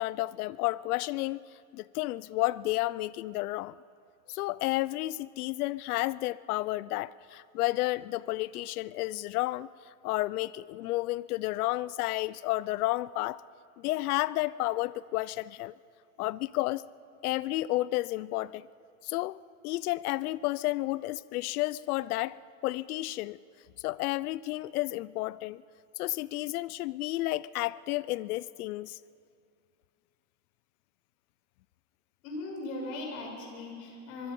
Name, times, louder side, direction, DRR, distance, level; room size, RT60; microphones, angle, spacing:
voice 1, 0.0-1.4 1.7-3.8 4.3-9.7 10.0-13.4 13.8-15.7 16.2-16.8 17.2-18.7 19.0-22.4 22.6-23.4 23.8-25.6 26.0-29.0, left 18 dB, 85° left, 20 dB, 0.6 m, -31 dB
voice 2, 32.2-34.3, left 2 dB, 65° left, 1 dB, 6.8 m, -38 dB
24.0 x 23.0 x 5.4 m, 2.4 s
supercardioid pair, 160°, 43 cm